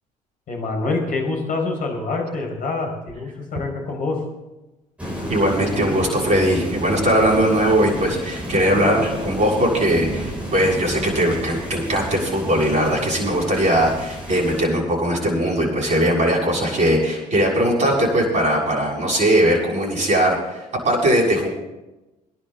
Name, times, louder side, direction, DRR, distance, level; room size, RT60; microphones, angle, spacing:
voice 1, 0.5-4.2, left 3 dB, 40° left, 0 dB, 4.8 m, -26 dB
sound 1, 5.0-14.6, equal, 5° right, 6.1 m, -31 dB
voice 2, 5.3-21.5, right 1 dB, 35° right, -2 dB, 6.8 m, -20 dB
23.5 x 11.0 x 3.9 m, 1.0 s
figure-of-eight pair, 55°, 20 cm